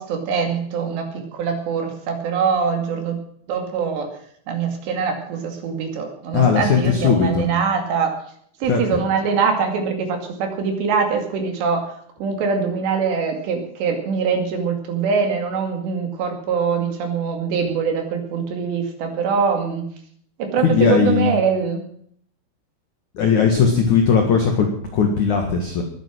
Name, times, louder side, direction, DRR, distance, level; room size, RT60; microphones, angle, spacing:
voice 1, 0.0-3.2 3.5-4.1 4.5-8.1 8.6-11.9 12.2-19.8 20.4-21.8, right 5 dB, 60° right, 4 dB, 4.3 m, -23 dB
voice 2, 6.3-7.5 8.6-9.0 20.6-21.4 23.1-25.8, left 6 dB, 55° left, 3 dB, 2.3 m, -18 dB
21.0 x 9.1 x 6.3 m, 0.63 s
omnidirectional pair, 5.8 m